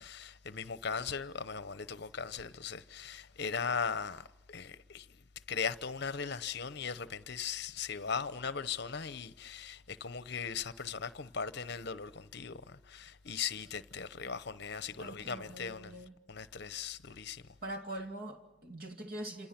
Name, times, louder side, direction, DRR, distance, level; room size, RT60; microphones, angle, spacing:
voice 1, 0.0-5.1 5.5-15.9 16.3-17.4, left 6 dB, 55° left, 0.8 m, -38 dB
voice 2, 15.0-16.1 17.6-19.5, right 1 dB, 45° right, 2.6 m, -43 dB
28.5 x 27.0 x 5.9 m
head